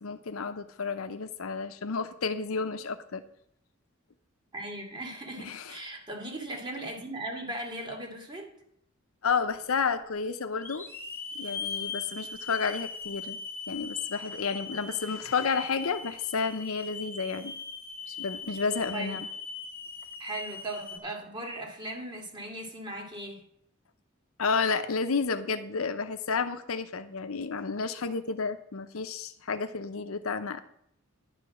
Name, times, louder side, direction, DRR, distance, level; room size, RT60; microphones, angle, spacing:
voice 1, 0.0-3.2 5.4-5.8 9.2-10.9 11.3-13.4 13.7-17.5 18.1-19.3 24.4-30.6, left 5 dB, 85° left, 10 dB, 0.7 m, -31 dB
voice 2, 4.5-8.5 18.9-19.2 20.2-23.4, right 1 dB, 20° right, 1 dB, 2.2 m, -38 dB
Hiss / Alarm, 9.5-9.6 10.6-21.0, left 5 dB, 10° left, 1.5 m, -40 dB
10.5 x 5.0 x 7.2 m, 0.73 s
head